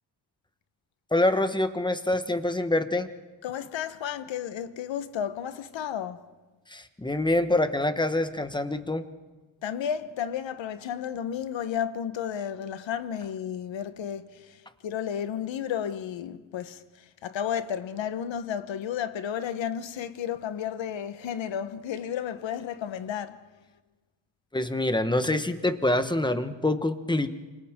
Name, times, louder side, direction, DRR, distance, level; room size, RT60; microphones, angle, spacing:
voice 1, 1.1-3.1 6.7-9.0 24.5-27.3, left 1 dB, 10° left, 1.2 m, -25 dB
voice 2, 3.4-6.3 9.6-23.4, left 9 dB, 65° left, 1.2 m, -33 dB
28.0 x 25.0 x 3.7 m
cardioid pair, 100°, 48 cm